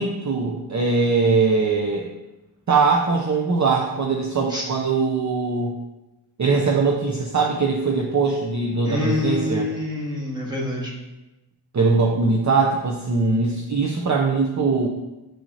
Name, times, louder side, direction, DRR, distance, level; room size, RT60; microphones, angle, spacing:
voice 1, 0.0-2.1 2.7-5.8 6.4-9.7 11.7-14.9, right 4 dB, 40° right, 0 dB, 0.6 m, -21 dB
voice 2, 8.8-10.9, left 2 dB, 10° right, -3 dB, 1.6 m, -26 dB
7.0 x 5.9 x 2.8 m, 1.0 s
wide cardioid pair, 100°, 45 cm